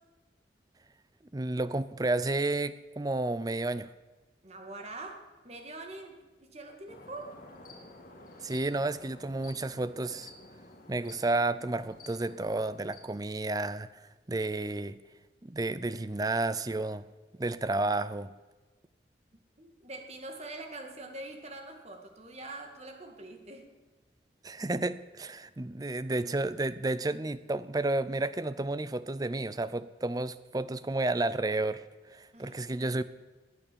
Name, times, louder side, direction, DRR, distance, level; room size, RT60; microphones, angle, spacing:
voice 1, 1.3-3.9 8.4-10.3 10.9-14.0 14.3-15.0 15.4-17.1 17.4-18.3 24.4-31.8 32.1-33.0, right 2 dB, 20° right, 15 dB, 0.5 m, -31 dB
voice 2, 4.4-7.4 19.6-23.7 32.3-33.0, right 2 dB, 35° right, 4 dB, 2.1 m, -44 dB
sound 1, 6.9-13.0, left 2 dB, 50° left, 2.9 m, -52 dB
20.5 x 8.5 x 7.0 m, 1.2 s
head